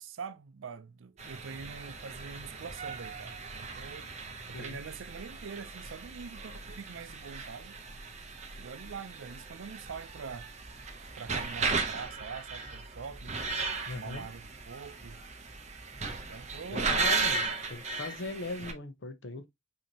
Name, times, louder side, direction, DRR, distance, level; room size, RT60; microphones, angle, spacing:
voice 1, 0.0-4.1 4.5-7.8 8.6-10.5 11.2-13.4 13.9-15.2 16.3-16.9, right 5 dB, 85° right, 0.5 m, -44 dB
sound 1, 1.2-18.7, right 4 dB, 35° right, 0.7 m, -36 dB
sound 2, 9.8-17.3, right 1 dB, 5° left, 1.7 m, -52 dB
voice 2, 13.9-14.3 16.6-19.5, left 2 dB, 70° left, 0.7 m, -39 dB
5.2 x 2.8 x 2.8 m
head